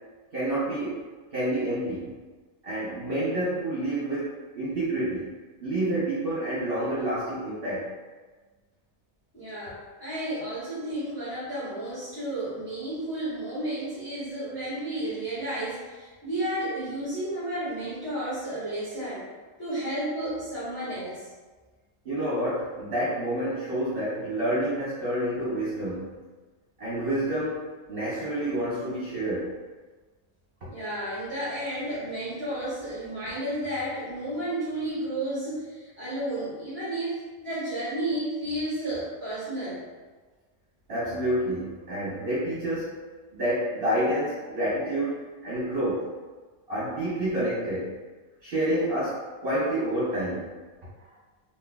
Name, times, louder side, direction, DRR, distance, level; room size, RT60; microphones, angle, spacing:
voice 1, 0.3-1.0 1.3-2.1 2.6-5.3 5.6-7.9 22.0-26.1 26.8-29.5 40.9-43.0 43.3-46.1 46.7-47.9 48.4-50.5, right 1 dB, 50° right, -9 dB, 1.0 m, -28 dB
voice 2, 9.3-19.3 19.6-21.3 30.7-39.8, right 1 dB, 20° left, -11 dB, 1.5 m, -32 dB
3.7 x 2.9 x 2.2 m, 1.3 s
omnidirectional pair, 1.3 m